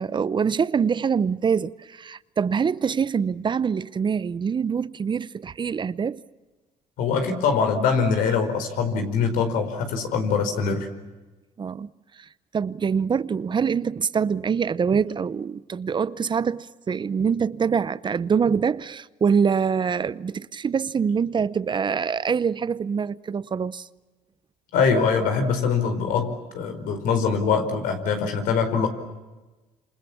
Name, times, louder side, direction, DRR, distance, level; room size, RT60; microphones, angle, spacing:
voice 1, 0.0-6.2 11.6-23.9, right 6 dB, 35° right, 0.8 m, -25 dB
voice 2, 7.0-10.9 24.7-28.9, left 5 dB, 80° left, 4.7 m, -23 dB
27.5 x 27.5 x 7.3 m
cardioid pair, 90°, 14 cm